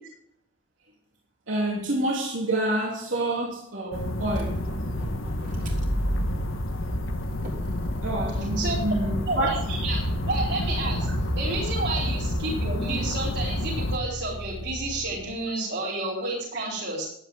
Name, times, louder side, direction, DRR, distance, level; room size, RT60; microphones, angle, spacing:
voice 1, 1.5-4.6 8.0-9.5, right 1 dB, 75° right, 3.2 m, -28 dB
sound 1, 3.9-14.0, left 1 dB, 85° left, 1.4 m, -29 dB
Motor vehicle (road), 4.3-15.4, equal, 40° right, 3.2 m, -35 dB
voice 2, 8.4-9.0 9.3-11.1 11.3-17.0, right 2 dB, 55° right, 6.8 m, -31 dB
15.0 x 11.5 x 3.8 m
head